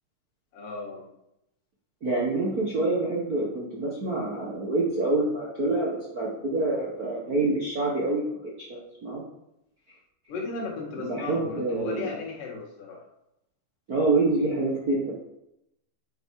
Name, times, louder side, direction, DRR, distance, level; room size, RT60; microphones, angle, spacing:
voice 1, 0.5-1.1 10.3-13.1, left 4 dB, 80° left, -2 dB, 3.6 m, -35 dB
voice 2, 2.0-9.2 11.0-12.1 13.9-15.1, right 2 dB, 45° right, -4 dB, 1.1 m, -27 dB
9.0 x 5.7 x 4.8 m, 0.83 s
omnidirectional pair, 3.7 m